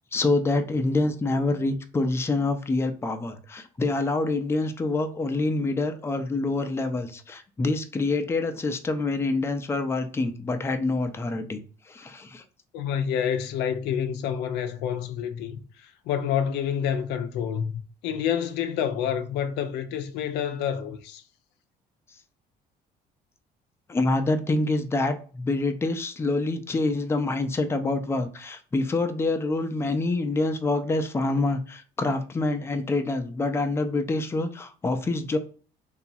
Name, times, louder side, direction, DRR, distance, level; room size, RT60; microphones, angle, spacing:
voice 1, 0.1-11.6 11.9-12.4 23.9-35.4, left 2 dB, 15° left, 0.4 m, -26 dB
voice 2, 12.7-21.2, left 8 dB, 85° left, 0.5 m, -28 dB
2.9 x 2.3 x 2.6 m
cardioid pair, 110°, 17 cm